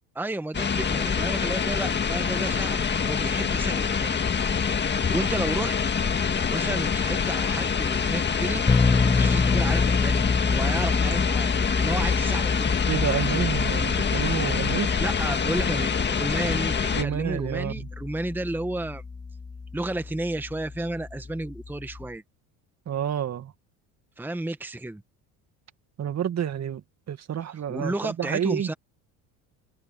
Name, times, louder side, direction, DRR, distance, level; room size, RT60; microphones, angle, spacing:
voice 1, 0.1-4.2 5.1-5.8 6.5-8.6 9.0-12.9 15.0-19.0 19.7-22.2 24.2-25.0 27.7-28.7, right 2 dB, 5° right, 1.2 m, -32 dB
sound 1, 0.5-17.0, left 6 dB, 25° left, 1.8 m, -25 dB
sound 2, 8.7-22.1, left 4 dB, 10° left, 0.5 m, -28 dB
voice 2, 12.8-14.9 16.9-17.9 22.9-23.5 26.0-28.7, right 9 dB, 40° right, 2.0 m, -29 dB
open air
supercardioid pair, 95°, 40 cm